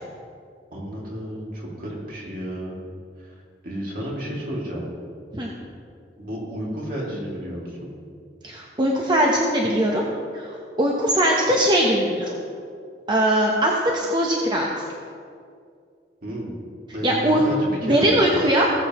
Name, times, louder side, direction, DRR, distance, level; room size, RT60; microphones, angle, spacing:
voice 1, 0.7-2.8 3.2-4.8 6.2-7.9 16.2-16.5 16.9-18.3, equal, 55° right, -4 dB, 2.5 m, -31 dB
voice 2, 8.4-10.1 10.3-10.5 10.8-12.3 13.1-14.7 17.0-17.4 17.8-18.7, right 1 dB, 25° right, -2 dB, 0.9 m, -20 dB
18.0 x 7.6 x 3.0 m, 2.3 s
head